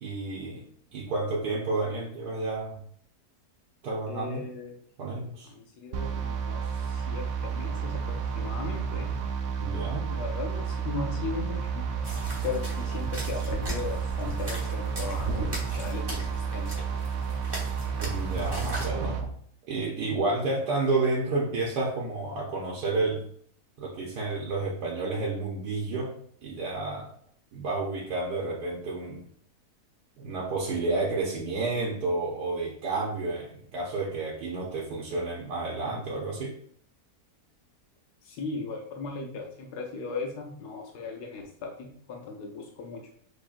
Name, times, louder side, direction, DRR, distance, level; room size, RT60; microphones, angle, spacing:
voice 1, 0.0-0.6 0.9-2.8 3.8-4.4 5.0-5.5 9.6-10.1 18.0-19.3 19.7-23.2 23.8-26.1 26.4-27.1 27.5-29.2 30.2-36.5, right 3 dB, 90° right, -4 dB, 1.4 m, -30 dB
voice 2, 4.1-4.8 5.4-9.1 10.1-11.8 12.4-16.7 38.2-43.1, left 4 dB, 90° left, 1 dB, 1.3 m, -37 dB
sound 1, 5.9-19.2, right 6 dB, 65° right, 0.7 m, -31 dB
sound 2, 12.0-18.9, right 1 dB, 20° right, 0.9 m, -37 dB
6.6 x 3.0 x 2.5 m, 0.63 s
omnidirectional pair, 1.7 m